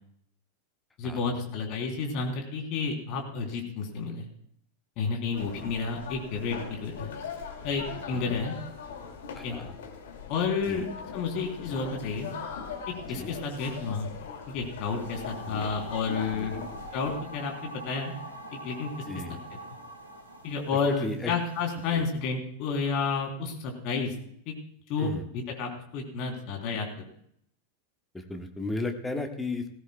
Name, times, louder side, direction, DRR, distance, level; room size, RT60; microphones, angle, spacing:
voice 1, 1.0-4.3 5.0-7.1 7.6-8.5 9.4-9.6 10.3-10.9 11.1-12.3 13.1-14.1 14.5-16.6 16.9-18.1 18.5-18.9 20.4-24.1 24.5-24.6 24.9-27.0, left 5 dB, 40° left, 1 dB, 3.3 m, -31 dB
sound 1, 5.3-17.2, left 6 dB, 60° left, 2.4 m, -41 dB
voice 2, 5.4-5.7 8.3-8.4 9.3-9.7 10.7-10.8 13.1-13.3 15.4-15.6 16.3-16.5 19.1-19.4 20.9-21.3 21.9-22.1 25.0-25.2 28.1-29.6, left 2 dB, 10° left, 4 dB, 1.5 m, -35 dB
sound 2, 14.8-21.9, equal, 90° left, 2.9 m, -43 dB
19.5 x 16.0 x 2.3 m, 0.66 s
figure-of-eight pair, 90°, 0 cm